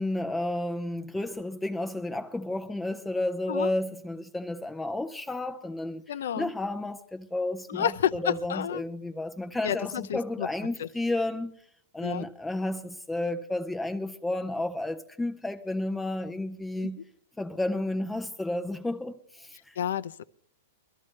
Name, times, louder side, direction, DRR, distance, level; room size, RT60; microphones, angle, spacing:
voice 1, 0.0-6.0 6.4-11.5 11.9-17.0 17.4-19.8, left 2 dB, 5° left, 0.5 m, -32 dB
voice 2, 6.1-6.5 7.7-8.8 9.6-10.5 10.8-10.9 12.0-12.3 16.8-16.9 19.8-20.2, left 9 dB, 80° left, 0.6 m, -30 dB
23.5 x 12.5 x 3.2 m
hypercardioid pair, 145°, 0 cm